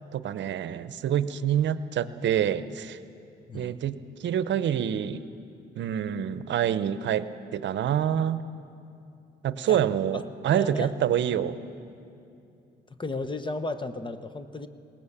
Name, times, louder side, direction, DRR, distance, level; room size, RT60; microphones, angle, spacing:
voice 1, 0.1-3.0 3.5-5.3 5.8-8.4 9.4-11.6, right 9 dB, 65° right, 14 dB, 0.8 m, -27 dB
voice 2, 10.5-10.9 11.3-11.4 13.0-14.7, left 2 dB, 25° left, 10 dB, 1.0 m, -34 dB
20.0 x 18.0 x 7.3 m, 2.7 s
cardioid pair, 90°, 20 cm